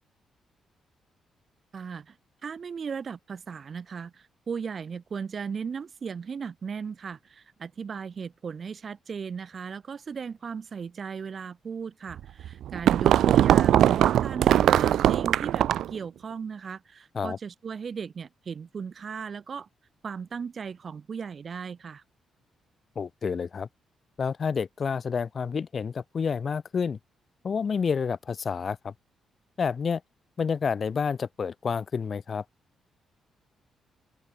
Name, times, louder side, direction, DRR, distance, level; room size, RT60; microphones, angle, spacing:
voice 1, 1.7-2.2 2.4-19.7 20.0-22.0, right 6 dB, 50° right, 3.8 m, -37 dB
sound 1, 12.2-16.0, right 11 dB, 70° right, 0.8 m, -21 dB
voice 2, 23.0-23.7 24.2-27.0 27.4-28.9 29.6-30.0 30.4-32.4, left 6 dB, 50° left, 2.7 m, -29 dB
open air
hypercardioid pair, 45°, 0 cm